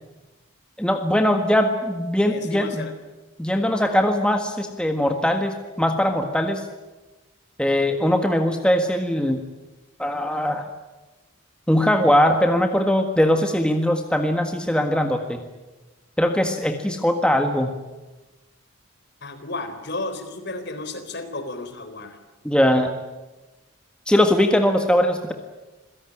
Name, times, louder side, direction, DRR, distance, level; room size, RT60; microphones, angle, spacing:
voice 1, 0.8-2.9 3.4-6.6 7.6-9.4 10.0-10.7 11.7-15.4 16.2-17.7 22.4-22.9 24.1-25.3, left 1 dB, 5° left, 4 dB, 1.6 m, -21 dB
voice 2, 2.2-2.9 19.2-22.2, left 2 dB, 55° left, 8 dB, 3.9 m, -33 dB
27.0 x 17.0 x 9.9 m, 1.1 s
head